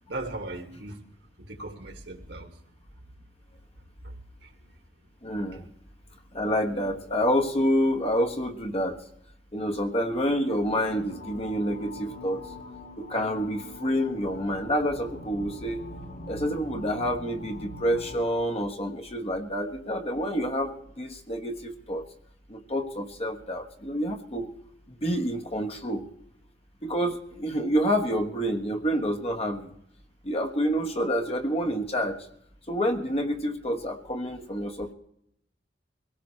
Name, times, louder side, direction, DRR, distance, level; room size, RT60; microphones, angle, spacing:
voice 1, 0.1-1.0 1.4-2.5 4.0-4.1 4.4-4.5, right 2 dB, 70° right, 2.2 m, -37 dB
voice 2, 5.2-5.7 6.3-9.0 9.5-12.4 13.0-15.9 16.3-22.1 22.5-24.5 25.0-26.1 26.8-29.7 30.2-32.3 32.7-34.9, equal, 35° left, 1.3 m, -28 dB
sound 1, 10.4-18.2, left 2 dB, 80° left, 5.1 m, -43 dB
23.5 x 17.0 x 3.3 m
head